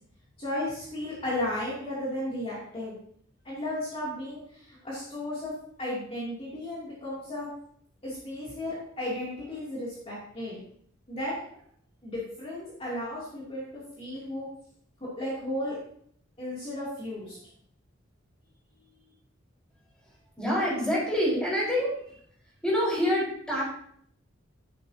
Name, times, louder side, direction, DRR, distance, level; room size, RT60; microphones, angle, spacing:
voice 1, 0.4-3.0 3.4-5.5 5.8-7.5 8.0-10.6 11.1-11.6 12.0-14.5 15.0-15.8 16.4-17.4, left 1 dB, 30° left, -7 dB, 2.8 m, -34 dB
voice 2, 20.4-22.2 22.6-23.6, equal, 5° left, -6 dB, 4.6 m, -26 dB
11.0 x 11.0 x 2.8 m, 0.64 s
head